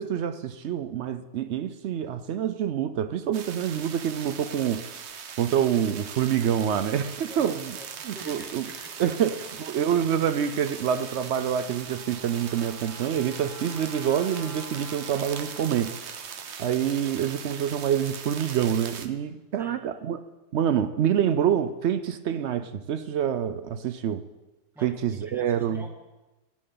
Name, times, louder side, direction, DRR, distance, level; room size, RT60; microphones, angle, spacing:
voice 1, 0.0-4.9 5.4-7.8 8.0-8.7 9.0-15.9 16.6-20.2 20.5-24.2 24.8-25.8, right 9 dB, 75° right, 0.6 m, -26 dB
sound 1, 3.3-19.1, right 7 dB, 50° right, 0.9 m, -40 dB
voice 2, 7.3-9.1 19.6-19.8 24.7-26.0, equal, ahead, 1.5 m, -48 dB
Trumpet, 10.8-16.5, left 1 dB, 30° left, 2.4 m, -48 dB
17.0 x 12.0 x 3.9 m
omnidirectional pair, 1.8 m